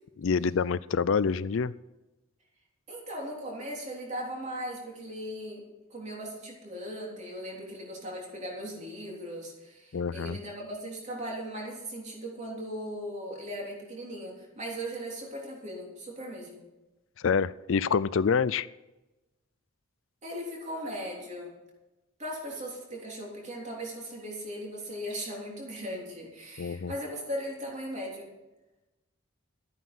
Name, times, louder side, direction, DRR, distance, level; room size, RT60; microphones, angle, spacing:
voice 1, 0.2-1.7 9.9-10.4 17.2-18.7 26.6-26.9, left 5 dB, 60° left, 18 dB, 0.4 m, -27 dB
voice 2, 2.9-5.6 5.9-16.6 20.2-21.5 22.2-28.3, equal, 30° right, -2 dB, 3.5 m, -38 dB
13.0 x 9.3 x 6.1 m, 1.0 s
head